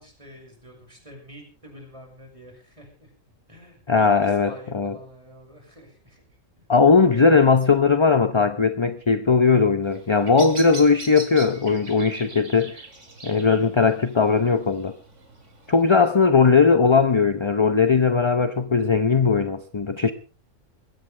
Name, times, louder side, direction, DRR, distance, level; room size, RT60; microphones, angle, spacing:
voice 1, 0.0-3.1 3.5-6.2 6.6-6.7 7.1-7.2, equal, 25° right, 6.1 m, -46 dB
voice 2, 3.9-4.9 6.7-12.8 13.2-15.0 15.7-20.1, left 5 dB, 25° left, 0.7 m, -19 dB
Bird vocalization bird call bird song, 9.8-15.8, right 3 dB, 60° right, 3.2 m, -41 dB
21.0 x 16.5 x 3.4 m
omnidirectional pair, 1.4 m